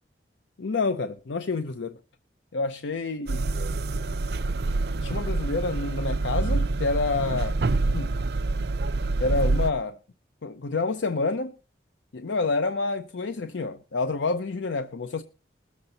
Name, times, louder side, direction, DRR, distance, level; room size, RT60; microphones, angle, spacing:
voice 1, 0.6-2.0 2.5-3.4 5.0-7.6 7.9-8.1 9.2-10.0 10.4-11.5 12.1-15.2, left 3 dB, 90° left, 0.6 m, -28 dB
sound 1, 3.3-9.7, right 3 dB, 60° right, 0.5 m, -26 dB
20.5 x 7.3 x 4.0 m
head